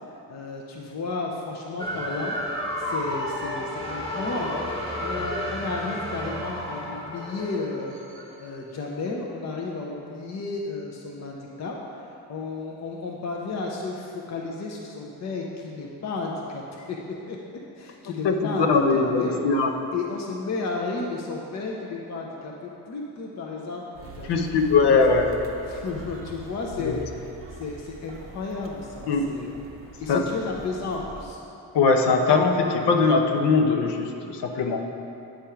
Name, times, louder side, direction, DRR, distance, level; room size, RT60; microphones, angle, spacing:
voice 1, 0.1-2.4 2.8-8.0 8.4-11.8 12.0-17.0 17.3-17.4 17.8-19.4 19.9-25.0 25.6-29.6 30.0-31.4, left 3 dB, 40° left, -1 dB, 0.7 m, -33 dB
sound 1, 1.8-8.4, equal, 15° left, 1.3 m, -32 dB
voice 2, 18.2-19.7 24.3-25.3 26.8-26.9 29.1-29.2 30.1-30.2 31.7-34.8, left 4 dB, 80° left, 3 dB, 0.8 m, -21 dB
sound 2, 23.9-31.3, right 2 dB, 35° right, 0.6 m, -43 dB
8.9 x 3.5 x 5.6 m, 2.7 s
cardioid pair, 115°, 41 cm